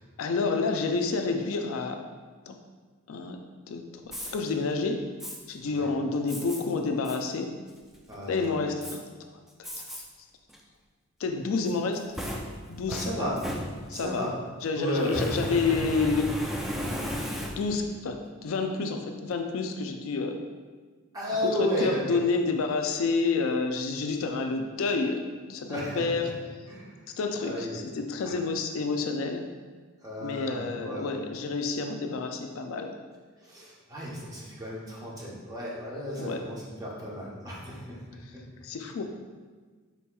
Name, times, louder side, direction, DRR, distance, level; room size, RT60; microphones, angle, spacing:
voice 1, 0.2-2.0 2.5-2.6 3.1-3.4 3.7-5.0 5.5-7.5 8.3-9.1 10.0-10.3 11.2-12.1 12.7-13.3 13.9-14.3 14.6-16.5 17.1-17.2 17.5-20.4 21.4-26.3 27.2-29.4 30.2-33.0 36.2-36.4 38.6-39.0, left 4 dB, 70° left, 5 dB, 0.4 m, -29 dB
Fire, 4.0-4.3 5.2-5.4 6.3-6.6 7.0-7.2 7.7-8.1 8.8-9.0 9.6-10.0 10.5-10.6 11.7-14.1 15.0-17.9, equal, ahead, 0.3 m, -35 dB
voice 2, 8.1-8.7 12.9-13.3 13.9-14.3 14.7-15.2 21.1-22.2 25.7-26.3 26.7-27.0 27.4-27.8 28.2-28.4 30.0-31.1 33.4-38.0 38.3-38.4, equal, 15° right, -5 dB, 0.8 m, -33 dB
4.4 x 4.2 x 2.3 m, 1.5 s
head